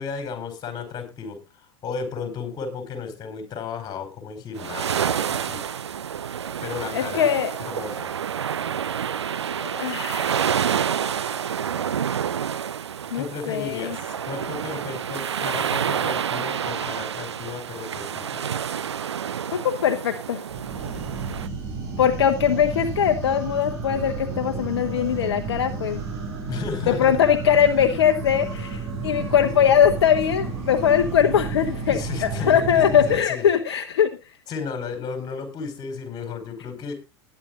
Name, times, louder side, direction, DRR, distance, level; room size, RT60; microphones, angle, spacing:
voice 1, 0.0-1.4 1.8-5.6 6.6-7.3 7.6-8.1 13.1-18.6 26.5-27.2 31.9-33.5 34.5-36.9, left 5 dB, 25° left, 8 dB, 4.8 m, -34 dB
sound 1, 4.6-21.5, right 8 dB, 75° right, 0.7 m, -28 dB
voice 2, 6.9-7.5 9.6-10.5 13.1-14.0 19.6-20.4 22.0-26.0 26.9-34.1, left 9 dB, 65° left, 6 dB, 1.1 m, -21 dB
sound 2, 20.5-33.2, right 4 dB, 45° right, 7.5 m, -32 dB
20.0 x 9.7 x 2.5 m, 0.26 s
figure-of-eight pair, 90°, 14 cm